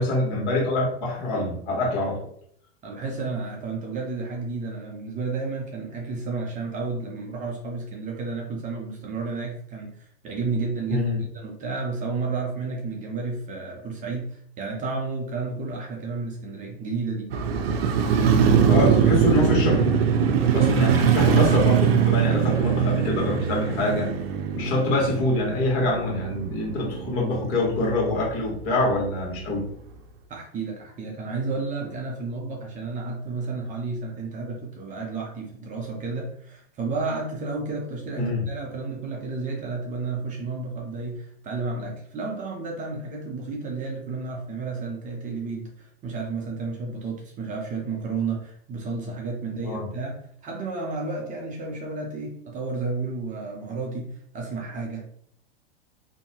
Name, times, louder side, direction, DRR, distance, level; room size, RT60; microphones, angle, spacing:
voice 1, 0.0-2.3 10.9-11.2 18.7-20.0 20.4-24.1 24.5-29.6 38.2-38.4 49.6-49.9, left 2 dB, 55° left, -2 dB, 1.4 m, -25 dB
voice 2, 2.8-17.3 30.3-50.2 50.4-55.1, right 4 dB, 25° right, 0 dB, 0.6 m, -32 dB
Motorcycle, 17.3-27.4 27.8-27.9, right 7 dB, 70° right, 0.5 m, -22 dB
2.7 x 2.2 x 2.8 m, 0.67 s
hypercardioid pair, 110°, 31 cm